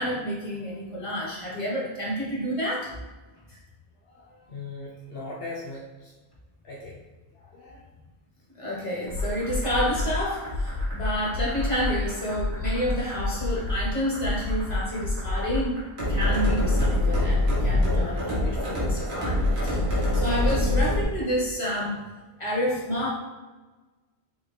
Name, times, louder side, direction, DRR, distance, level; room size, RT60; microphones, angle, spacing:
voice 1, 0.0-2.9 3.5-3.6 8.6-15.8 16.1-19.8 20.1-22.0 22.4-23.1, equal, 30° left, -6 dB, 1.4 m, -29 dB
voice 2, 4.1-6.1 6.6-6.9 7.3-7.8 8.9-9.0, left 2 dB, 65° left, -5 dB, 1.0 m, -39 dB
sound 1, 9.1-21.0, left 1 dB, 85° right, 1.4 m, -26 dB
4.1 x 3.4 x 3.3 m, 1.2 s
omnidirectional pair, 1.1 m